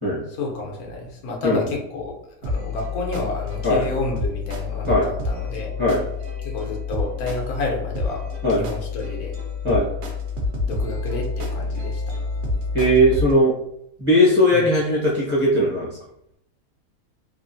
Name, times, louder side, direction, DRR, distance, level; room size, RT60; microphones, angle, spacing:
voice 1, 0.3-2.1 2.4-5.7 6.4-8.2 8.5-9.3 10.6-12.0 14.5-14.6, left 2 dB, 85° left, 0 dB, 1.2 m, -30 dB
sound 1, 2.4-13.3, left 3 dB, 60° right, 0.7 m, -28 dB
voice 2, 12.7-13.5 14.0-15.9, equal, 25° right, -7 dB, 0.8 m, -18 dB
2.9 x 2.4 x 2.6 m, 0.76 s
omnidirectional pair, 1.6 m